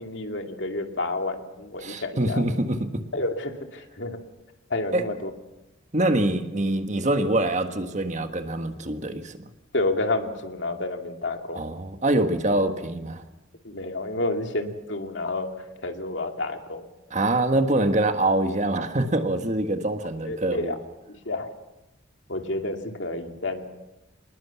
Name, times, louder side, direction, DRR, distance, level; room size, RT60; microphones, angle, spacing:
voice 1, 0.0-2.4 3.1-4.2 4.7-5.3 9.7-11.6 13.6-15.5 15.8-16.8 20.3-20.8 21.3-21.5 22.3-23.6, left 2 dB, 65° left, 5 dB, 2.4 m, -29 dB
voice 2, 1.8-2.9 4.9-5.1 5.9-9.5 11.5-13.2 17.1-20.8, right 1 dB, 40° right, 7 dB, 1.6 m, -24 dB
26.0 x 20.5 x 7.2 m, 0.99 s
head